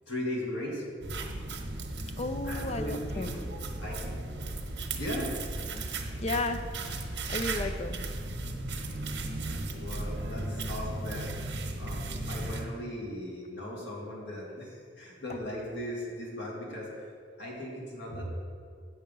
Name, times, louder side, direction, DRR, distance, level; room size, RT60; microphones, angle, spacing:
voice 1, 0.1-0.8 1.9-2.1 2.4-4.4 4.9-5.3 9.7-11.3 11.8-17.1 17.4-18.3, left 1 dB, 90° left, -4 dB, 2.3 m, -38 dB
sound 1, 1.0-12.7, right 2 dB, 85° right, 1.0 m, -36 dB
voice 2, 2.2-3.5 6.2-6.7 7.3-8.0, left 2 dB, 35° left, 9 dB, 0.4 m, -33 dB
8.1 x 6.5 x 5.3 m, 2.2 s
head